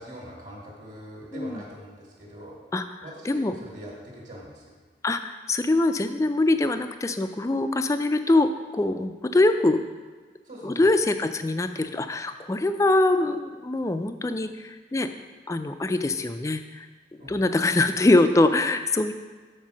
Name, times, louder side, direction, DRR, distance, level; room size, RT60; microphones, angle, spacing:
voice 1, 0.0-2.6 3.0-4.8 10.4-10.9 17.2-17.4, equal, 40° right, -4 dB, 1.6 m, -42 dB
voice 2, 2.7-3.5 5.0-9.8 10.6-15.1 15.5-16.9 17.3-19.1, left 2 dB, 20° left, 9 dB, 0.3 m, -23 dB
7.3 x 4.6 x 6.2 m, 1.4 s
head